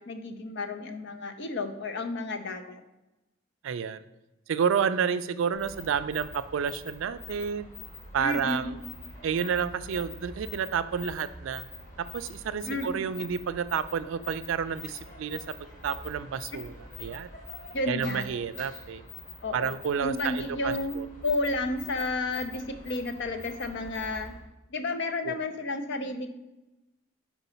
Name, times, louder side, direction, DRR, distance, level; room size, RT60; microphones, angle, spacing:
voice 1, 0.1-2.8 8.2-8.7 12.7-13.0 17.7-18.2 19.4-19.7 20.0-21.0 21.2-24.3 24.7-26.3, left 2 dB, 60° left, 8 dB, 0.6 m, -31 dB
voice 2, 3.6-4.0 4.5-7.7 8.1-8.8 9.2-11.7 12.0-15.5 15.8-16.7 17.0-17.3 17.9-19.0 19.5-21.1 25.2-25.4, right 7 dB, 70° right, 13 dB, 0.3 m, -30 dB
sound 1, 5.5-24.4, left 3 dB, 40° left, 1.3 m, -45 dB
4.6 x 4.0 x 5.6 m, 0.99 s
head